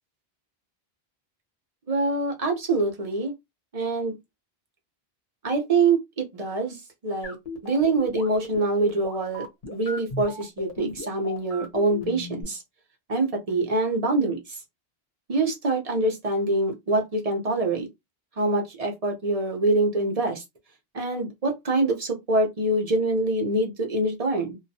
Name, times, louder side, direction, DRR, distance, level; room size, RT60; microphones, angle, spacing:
voice 1, 1.9-3.3 3.7-4.1 5.4-6.8 7.0-7.4 7.6-12.6 13.1-14.6 15.3-17.9 18.4-20.4 20.9-24.6, right 2 dB, 40° right, 0.7 m, -25 dB
sound 1, 7.2-12.4, left 3 dB, 60° left, 0.9 m, -36 dB
2.3 x 2.1 x 2.6 m
omnidirectional pair, 1.0 m